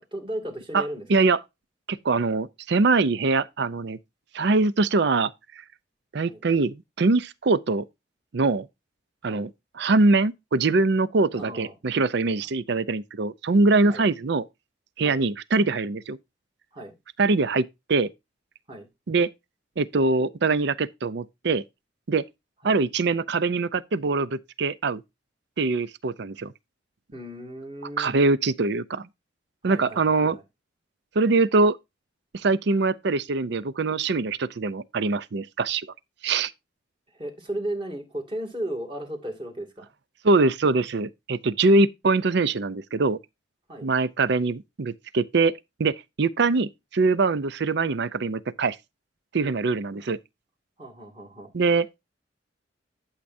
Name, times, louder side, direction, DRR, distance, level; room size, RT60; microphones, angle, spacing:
voice 1, 0.1-1.1 6.3-6.4 9.3-9.5 11.4-11.7 13.9-14.0 15.0-15.2 16.7-16.9 18.7-18.9 27.1-28.2 29.6-30.0 30.3-30.4 37.1-39.9 43.7-43.9 49.9-50.0 50.8-51.5, right 1 dB, 25° right, 2.5 m, -35 dB
voice 2, 1.9-4.0 4.3-5.3 6.1-7.9 8.3-8.7 9.2-14.5 15.0-16.2 17.2-18.1 19.1-19.3 19.8-21.6 22.1-22.2 22.6-25.0 25.6-26.5 28.0-29.1 29.6-30.4 31.2-31.8 32.3-35.9 36.2-36.5 40.2-43.2 43.8-45.5 45.8-48.8 49.3-50.2 51.5-51.9, right 3 dB, 60° right, 0.5 m, -23 dB
12.0 x 7.3 x 2.7 m
head